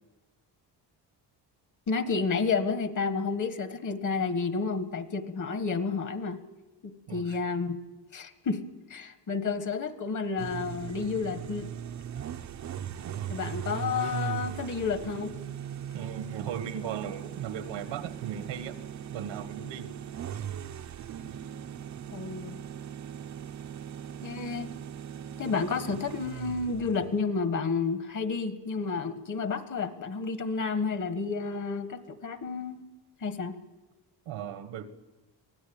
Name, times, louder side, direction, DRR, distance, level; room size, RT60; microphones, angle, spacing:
voice 1, 1.9-6.4 6.8-7.8 8.1-8.6 8.9-11.7 13.3-15.3 22.1-22.6 24.2-24.7 25.4-32.8 33.2-33.5, left 4 dB, 45° left, 10 dB, 1.6 m, -31 dB
voice 2, 7.1-7.4 13.0-13.5 15.9-18.8 19.1-19.9 34.3-34.9, right 9 dB, 85° right, 10 dB, 1.9 m, -37 dB
sound 1, 10.4-27.2, right 9 dB, 40° right, 0.8 m, -39 dB
24.0 x 17.5 x 8.9 m, 1.1 s
cardioid pair, 150°, 44 cm